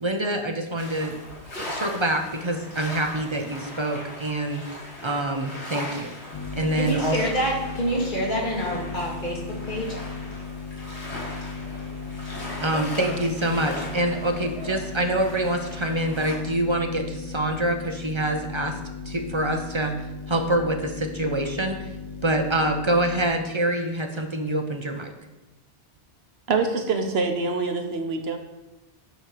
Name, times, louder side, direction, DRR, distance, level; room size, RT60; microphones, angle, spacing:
voice 1, 0.0-1.1 1.5-4.6 5.0-6.1 6.6-7.2 12.6-18.8 19.1-20.0 20.3-21.9 22.2-25.1, right 1 dB, 35° right, 4 dB, 0.6 m, -26 dB
sound 1, 0.8-16.3, left 1 dB, 75° left, 2.9 m, -39 dB
sound 2, 6.3-23.3, left 4 dB, 30° left, 0.8 m, -37 dB
voice 2, 6.8-10.0 12.7-13.2, equal, 45° left, -3 dB, 2.0 m, -27 dB
voice 3, 26.5-28.4, right 4 dB, 65° right, 5 dB, 1.1 m, -25 dB
9.0 x 3.0 x 6.6 m, 0.99 s
omnidirectional pair, 1.1 m